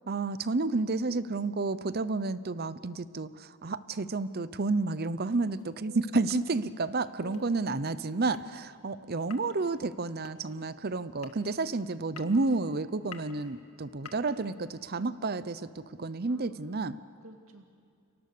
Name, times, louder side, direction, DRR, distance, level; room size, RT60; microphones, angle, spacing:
voice 1, 0.1-17.0, right 3 dB, 45° right, 15 dB, 0.7 m, -31 dB
sound 1, 5.2-14.9, left 6 dB, 80° left, 1.9 m, -53 dB
voice 2, 5.8-6.1 7.2-7.7 8.0-8.1 16.3-17.6, equal, 70° right, 3 dB, 2.5 m, -50 dB
29.5 x 24.0 x 6.8 m, 2.3 s
head